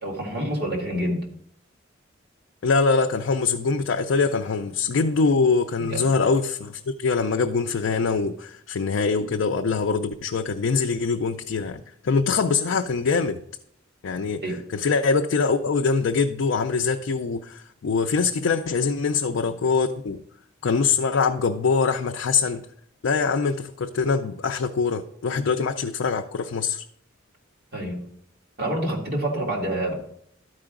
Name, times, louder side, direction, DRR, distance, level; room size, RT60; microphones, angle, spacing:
voice 1, 0.0-1.3 5.8-6.1 14.4-14.6 27.7-28.1 28.6-29.9, right 1 dB, 50° right, -1 dB, 2.0 m, -27 dB
voice 2, 2.6-13.4 14.0-14.4 14.7-20.2 20.6-22.6 23.0-26.8, left 4 dB, 70° left, 3 dB, 0.4 m, -23 dB
12.5 x 4.8 x 3.7 m, 0.68 s
head